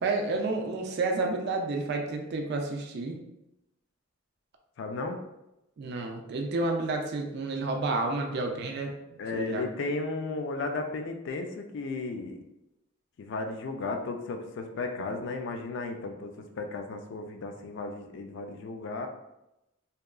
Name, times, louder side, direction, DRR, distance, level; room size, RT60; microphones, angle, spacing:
voice 1, 0.0-3.2 5.8-9.6, right 3 dB, 50° right, 2 dB, 0.3 m, -30 dB
voice 2, 4.8-5.2 9.2-12.4 13.2-19.1, left 3 dB, 60° left, 5 dB, 0.3 m, -34 dB
2.8 x 2.3 x 2.3 m, 0.90 s
head